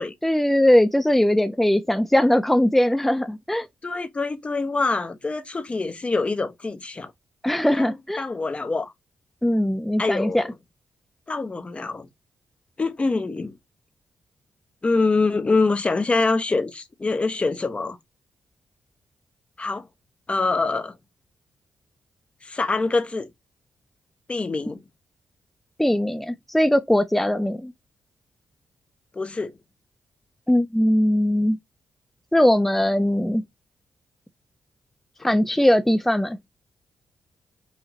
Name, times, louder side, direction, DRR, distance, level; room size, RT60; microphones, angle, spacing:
voice 1, 0.2-3.7 7.4-8.2 9.4-10.4 25.8-27.7 30.5-31.6 32.3-33.4 35.2-36.4, left 1 dB, 5° left, 0.5 m, -20 dB
voice 2, 3.8-7.1 7.8-8.9 10.0-10.5 11.3-12.1 12.8-13.6 14.8-18.0 19.6-19.9 20.3-20.9 22.4-23.3 24.3-24.8 29.1-29.5, left 3 dB, 35° left, 0.9 m, -25 dB
5.0 x 2.8 x 2.7 m
supercardioid pair, 45°, 4 cm